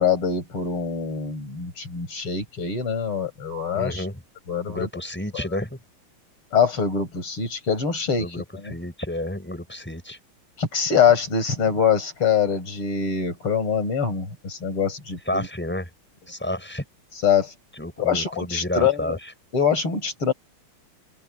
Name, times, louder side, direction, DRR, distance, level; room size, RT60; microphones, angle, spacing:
voice 1, 0.0-4.1 4.5-4.9 6.5-8.3 8.5-8.7 10.6-15.5 17.2-17.5 18.0-19.2 19.5-20.3, left 7 dB, 85° left, 5.8 m, -24 dB
voice 2, 3.7-4.2 4.7-5.8 8.2-10.2 15.3-15.9 16.3-16.8 17.8-19.3, left 1 dB, 5° left, 6.1 m, -30 dB
open air
omnidirectional pair, 2.4 m